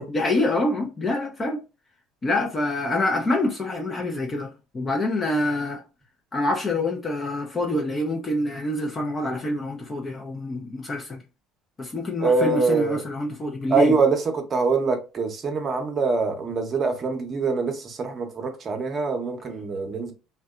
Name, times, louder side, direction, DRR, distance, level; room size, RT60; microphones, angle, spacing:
voice 1, 0.1-1.6 2.2-4.5 4.7-5.8 6.3-11.2 11.8-13.9, left 1 dB, 25° left, 0.5 m, -26 dB
voice 2, 12.2-13.0 13.7-20.1, right 4 dB, 35° right, 0.7 m, -24 dB
2.6 x 2.2 x 2.3 m
supercardioid pair, 95°, 0 cm